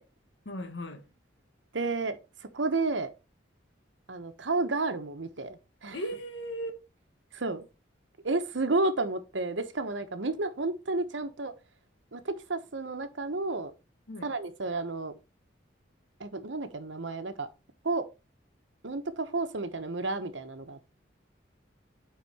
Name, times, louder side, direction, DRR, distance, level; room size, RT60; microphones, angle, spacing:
voice 1, 0.4-1.1 5.9-6.8 14.1-14.3, equal, 70° left, 1.5 m, -37 dB
voice 2, 1.7-2.2 2.5-3.1 4.1-6.0 7.3-7.6 8.2-11.5 12.1-13.7 14.2-15.1 16.2-17.5 17.8-18.0 18.8-20.9, right 3 dB, 75° right, 1.1 m, -31 dB
9.4 x 4.1 x 4.2 m
head